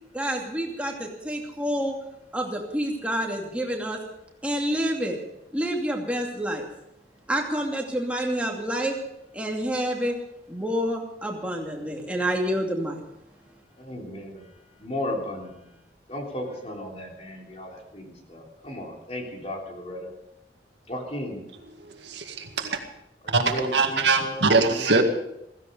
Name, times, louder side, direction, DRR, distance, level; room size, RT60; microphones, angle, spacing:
voice 1, 0.1-2.0 2.3-4.0 4.4-5.2 5.5-6.7 7.3-9.0 9.3-10.2 10.5-13.1, equal, 10° right, 0 dB, 2.6 m, -28 dB
voice 2, 13.8-14.5 14.8-15.7 16.1-20.1 20.9-21.4 23.2-25.0, left 1 dB, 35° left, 0 dB, 3.5 m, -35 dB
voice 3, 22.0-22.8 23.3-25.0, right 3 dB, 90° right, 5 dB, 2.0 m, -22 dB
16.0 x 16.0 x 5.4 m, 0.82 s
head